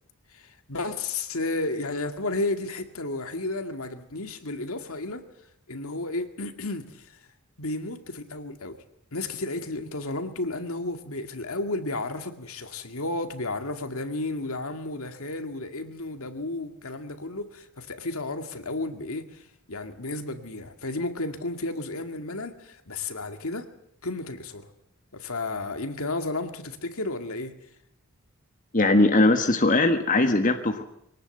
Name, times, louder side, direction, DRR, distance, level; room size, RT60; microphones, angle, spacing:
voice 1, 0.3-5.2 5.7-7.2 7.6-8.8 9.1-23.7 24.0-24.7 25.1-27.5, left 2 dB, 70° left, 7 dB, 2.2 m, -32 dB
voice 2, 28.7-30.8, left 2 dB, 35° left, 5 dB, 1.5 m, -20 dB
23.5 x 18.5 x 7.9 m, 0.73 s
head